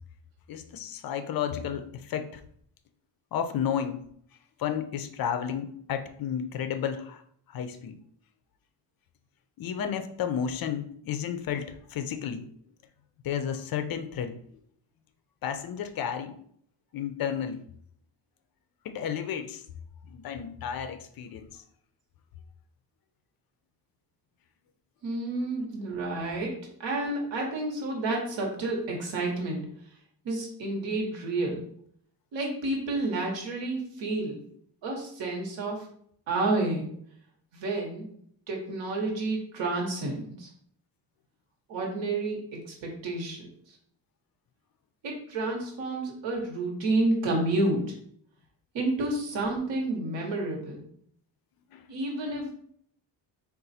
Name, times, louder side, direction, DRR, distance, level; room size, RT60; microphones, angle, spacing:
voice 1, 0.5-2.4 3.3-4.0 4.6-7.2 7.5-8.0 9.6-12.5 13.2-14.4 15.4-16.3 16.9-17.6 18.8-19.6 20.0-21.6 51.7-51.8, left 8 dB, 55° left, 8 dB, 0.5 m, -32 dB
voice 2, 25.0-29.7 30.2-31.6 32.3-34.5 34.8-35.9 36.3-36.9 37.5-38.1 38.5-40.5 41.7-43.7 45.0-47.9 48.7-50.8 51.9-52.5, right 2 dB, 85° right, -1 dB, 1.1 m, -30 dB
3.9 x 2.4 x 4.1 m, 0.64 s
cardioid pair, 165°, 44 cm